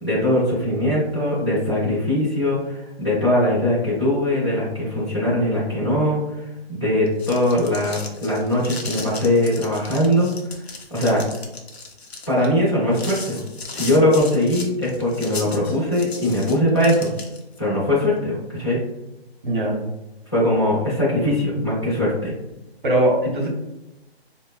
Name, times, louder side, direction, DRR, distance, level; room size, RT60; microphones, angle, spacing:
voice 1, 0.0-6.4 6.7-10.3 10.9-11.2 12.3-13.4 13.7-17.1 17.6-18.8 20.3-22.3, left 1 dB, 25° left, -10 dB, 0.6 m, -21 dB
sound 1, 7.1-17.6, left 4 dB, 75° left, 0.7 m, -36 dB
voice 2, 19.4-19.8 22.8-23.5, right 1 dB, 50° right, 0 dB, 0.8 m, -20 dB
4.0 x 2.1 x 2.2 m, 0.93 s
hypercardioid pair, 175°, 32 cm